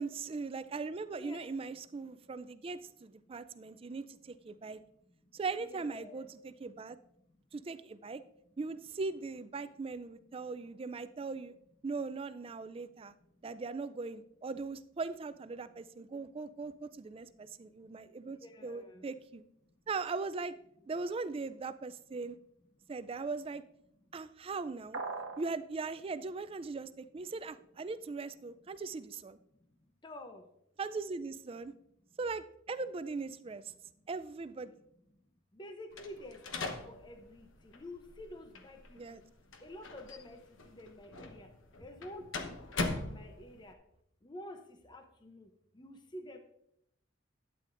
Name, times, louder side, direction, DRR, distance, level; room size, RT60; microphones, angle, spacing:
voice 1, 0.0-4.8 5.3-7.0 7.5-8.2 8.6-11.5 11.8-13.1 13.4-19.4 19.9-20.5 20.9-22.4 22.9-23.6 24.1-25.0 25.4-29.4 30.8-31.7 32.2-33.7 34.1-34.7 39.0-39.2, right 4 dB, 30° right, 14 dB, 0.3 m, -39 dB
voice 2, 1.1-1.5 5.6-6.2 7.3-7.4 18.3-19.1 30.0-30.5 35.5-39.2 39.6-41.5 41.8-42.6 43.0-43.8 44.2-46.4, left 1 dB, 25° left, 6 dB, 0.7 m, -49 dB
sound 1, 24.9-25.5, right 3 dB, 70° right, 1.0 m, -39 dB
sound 2, 35.9-43.7, left 3 dB, 80° left, 1.0 m, -42 dB
12.0 x 9.1 x 2.5 m, 0.76 s
head